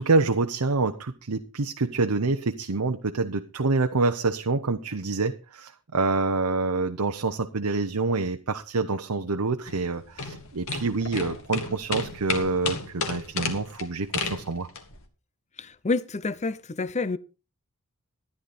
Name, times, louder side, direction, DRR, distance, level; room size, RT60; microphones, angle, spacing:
voice 1, 0.0-14.7, right 3 dB, 85° right, 0.9 m, -26 dB
sound 1, 9.7-15.0, left 4 dB, 65° left, 2.3 m, -32 dB
voice 2, 15.6-17.2, left 3 dB, 30° left, 0.7 m, -28 dB
13.5 x 11.5 x 4.2 m
head